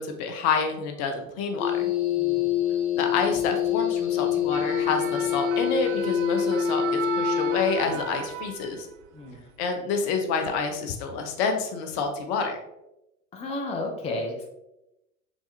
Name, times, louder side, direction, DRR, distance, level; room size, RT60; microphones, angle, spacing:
voice 1, 0.0-1.9 2.9-8.9 9.6-12.6, left 5 dB, 45° left, 5 dB, 0.8 m, -28 dB
sound 1, 1.6-8.1, left 9 dB, 75° left, 1.2 m, -26 dB
voice 2, 2.2-2.5 3.1-3.2 9.1-9.4 13.3-14.4, left 2 dB, 15° left, 1 dB, 0.6 m, -33 dB
sound 2, 4.3-9.0 9.4-9.6, right 9 dB, 50° right, 0.5 m, -35 dB
4.8 x 3.5 x 2.6 m, 0.91 s
figure-of-eight pair, 85°, 43 cm